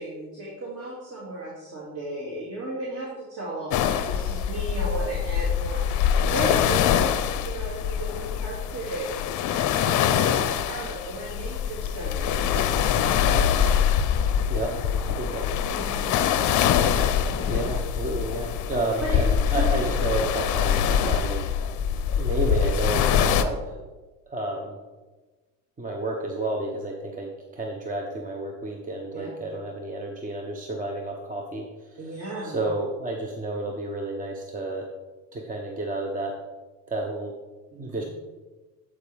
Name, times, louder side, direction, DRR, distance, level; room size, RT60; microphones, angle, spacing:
voice 1, 0.0-9.2 9.5-13.8 14.1-14.3 15.7-16.7 17.3-17.5 19.1-19.2 29.1-29.3 32.0-32.6 37.7-37.9, right 2 dB, 35° right, -6 dB, 2.5 m, -36 dB
sound 1, 3.7-23.4, left 8 dB, 50° left, 0.6 m, -24 dB
voice 2, 14.5-15.5 17.5-21.5 22.2-23.8 24.3-24.8 25.8-32.1 32.4-34.9 35.3-36.3 36.9-37.3 37.8-38.0, right 2 dB, 20° right, 1 dB, 0.9 m, -31 dB
10.5 x 4.8 x 3.4 m, 1.2 s
supercardioid pair, 90°, 39 cm